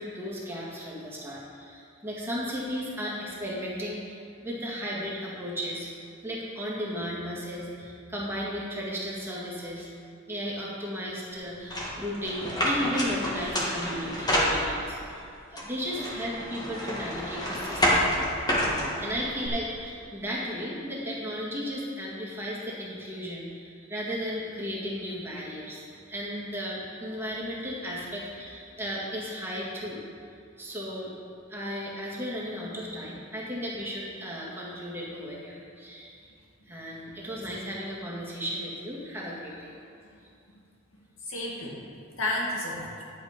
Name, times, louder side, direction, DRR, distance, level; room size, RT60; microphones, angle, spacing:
voice 1, 0.0-6.0 6.2-9.9 10.3-15.2 15.5-18.1 19.0-30.0 30.6-31.1 31.5-36.2 36.7-39.7 41.3-41.7, equal, 10° right, -6 dB, 2.0 m, -35 dB
sound 1, 11.7-15.0 15.6-19.5, equal, 20° left, 1.8 m, -28 dB
voice 2, 40.9-41.9 42.2-42.9, left 1 dB, 70° left, -3 dB, 2.1 m, -33 dB
11.5 x 7.8 x 5.2 m, 2.5 s
head